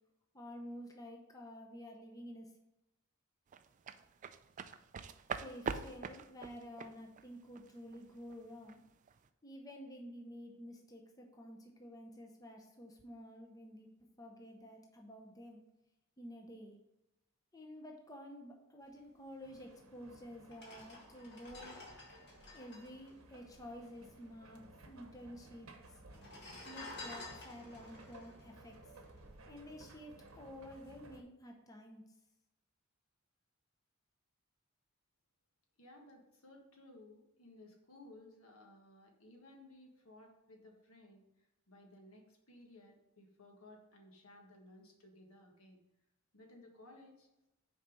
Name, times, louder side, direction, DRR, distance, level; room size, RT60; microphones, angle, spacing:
voice 1, 0.3-2.5 5.4-8.8 9.4-13.9 14.2-15.6 16.2-16.8 17.5-21.8 22.5-26.0 26.6-28.9 29.5-32.0, equal, 15° left, 1 dB, 0.7 m, -51 dB
sound 1, 3.5-8.7 9.1-9.3, right 5 dB, 35° right, 0.3 m, -43 dB
sound 2, 19.4-31.2, right 2 dB, 70° right, 0.9 m, -58 dB
sound 3, 19.8-19.9 20.4-24.1 24.4-24.5 24.7-25.4 26.0-29.5 30.0-30.2, left 2 dB, 50° left, 1.7 m, -52 dB
voice 2, 35.8-41.2 41.7-45.8 46.3-47.3, left 1 dB, 75° left, 1 dB, 1.5 m, -58 dB
6.3 x 4.5 x 5.3 m, 0.92 s
head